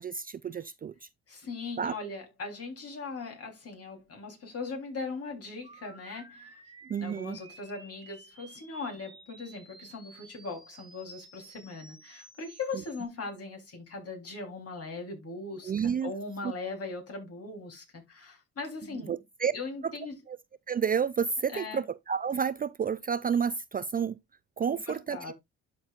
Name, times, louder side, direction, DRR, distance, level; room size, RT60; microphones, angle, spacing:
voice 1, 0.0-1.1 1.8-2.0 6.9-7.4 15.6-16.1 19.1-19.5 19.8-19.9 20.3-20.4 20.7-24.2 24.6-25.3, right 7 dB, 30° right, 0.4 m, -30 dB
voice 2, 1.3-6.6 7.0-19.2 19.5-20.1 21.5-21.8 24.7-25.3, left 3 dB, 50° left, 3.5 m, -39 dB
sound 1, 5.6-13.1, right 3 dB, 15° right, 1.4 m, -53 dB
12.0 x 4.5 x 2.4 m
cardioid pair, 90°, 30 cm